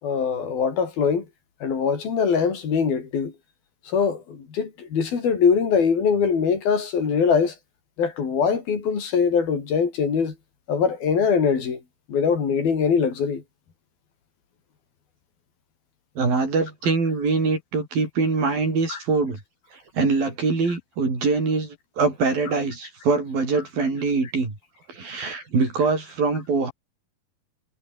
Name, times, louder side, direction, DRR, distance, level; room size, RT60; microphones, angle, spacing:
voice 1, 0.0-1.3 1.6-3.3 3.9-7.6 8.0-10.4 10.7-11.8 12.1-13.4 18.9-19.0, left 6 dB, 80° left, 6.4 m, -22 dB
voice 2, 16.2-19.4 19.9-24.6 24.9-26.7, right 4 dB, 70° right, 9.3 m, -23 dB
omnidirectional pair, 4.2 m